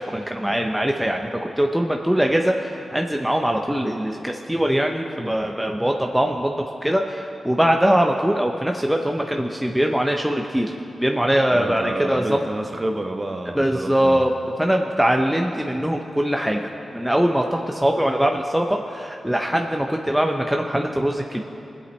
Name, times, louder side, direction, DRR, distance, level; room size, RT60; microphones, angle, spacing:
voice 1, 0.0-10.7 11.0-12.5 13.5-14.3 14.6-21.4, equal, 5° right, 2 dB, 0.8 m, -22 dB
voice 2, 11.5-14.2, right 1 dB, 30° right, 4 dB, 1.1 m, -29 dB
21.5 x 8.1 x 3.3 m, 2.7 s
cardioid pair, 50°, 0 cm